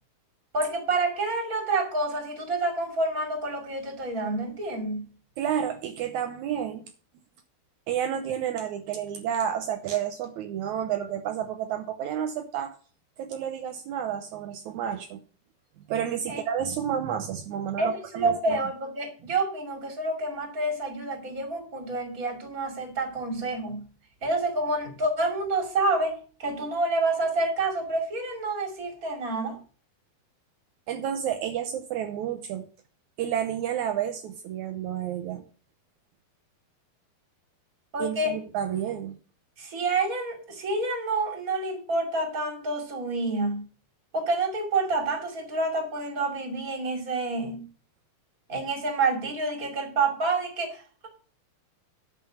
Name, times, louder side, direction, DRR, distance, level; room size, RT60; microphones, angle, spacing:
voice 1, 0.5-5.1 16.3-16.4 17.8-23.8 24.2-29.6 37.9-38.4 39.6-43.6 44.1-47.6 48.5-51.1, right 2 dB, 25° right, 4 dB, 2.4 m, -28 dB
voice 2, 5.4-6.8 7.9-12.7 13.2-15.2 15.9-18.6 30.9-32.7 33.2-35.4 38.0-39.1, right 9 dB, 80° right, 6 dB, 1.7 m, -30 dB
11.0 x 5.7 x 7.3 m, 0.39 s
omnidirectional pair, 4.5 m